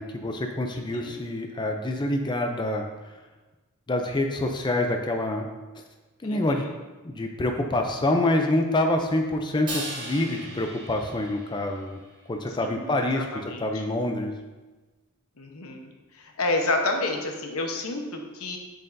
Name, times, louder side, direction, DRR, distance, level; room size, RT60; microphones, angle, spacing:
voice 1, 0.0-2.8 3.9-5.5 6.2-6.7 7.0-12.0 12.3-13.3 13.6-14.3, left 1 dB, 20° left, 4 dB, 0.4 m, -26 dB
voice 2, 0.7-1.1 6.2-6.7 12.6-13.8 15.4-18.6, left 2 dB, 85° left, 3 dB, 1.0 m, -30 dB
Crash cymbal, 9.7-12.1, right 2 dB, 25° right, 2.5 m, -37 dB
7.9 x 7.4 x 2.6 m, 1.2 s
head